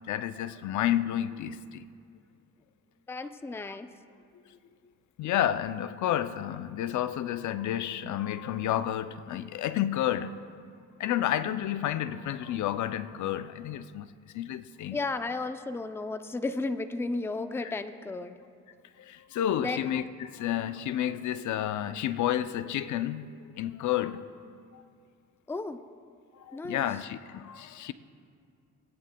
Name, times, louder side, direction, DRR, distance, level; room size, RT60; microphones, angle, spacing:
voice 1, 0.1-1.9 5.2-10.6 11.0-14.1 14.3-15.0 17.6-17.7 19.0-24.2 24.7-24.8 26.3-27.9, left 11 dB, 75° left, 0.5 m, -31 dB
voice 2, 3.1-3.9 14.9-18.4 19.6-19.8 25.5-25.8 26.5-26.9, left 3 dB, 10° left, 0.4 m, -33 dB
20.5 x 9.4 x 2.2 m
cardioid pair, 95°, 30 cm